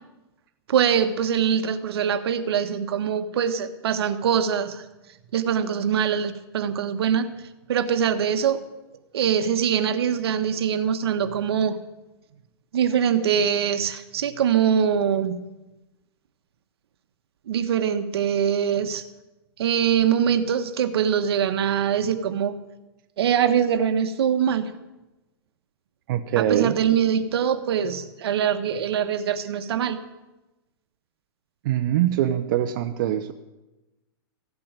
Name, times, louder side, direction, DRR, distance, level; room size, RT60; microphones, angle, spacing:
voice 1, 0.7-4.8 5.3-7.3 7.7-8.6 9.1-11.8 12.7-15.4 17.5-19.0 19.6-22.6 23.2-24.6 26.4-30.0, right 8 dB, 75° right, 10 dB, 1.4 m, -23 dB
voice 2, 26.1-26.7 31.6-33.3, right 11 dB, 55° right, 7 dB, 0.8 m, -23 dB
15.0 x 8.6 x 8.9 m, 1.0 s
supercardioid pair, 150°, 13 cm